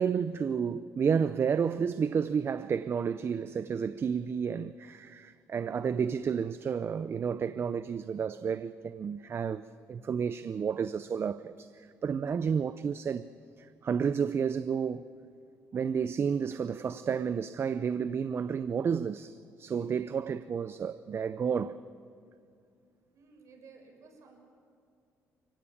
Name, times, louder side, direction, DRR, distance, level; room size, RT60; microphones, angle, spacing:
voice 1, 0.0-13.3 13.6-15.1 15.7-21.8, right 6 dB, 40° right, 0.6 m, -31 dB
voice 2, 23.1-24.5, right 4 dB, 55° right, 7.0 m, -55 dB
28.5 x 17.0 x 8.6 m
cardioid pair, 100°, 6 cm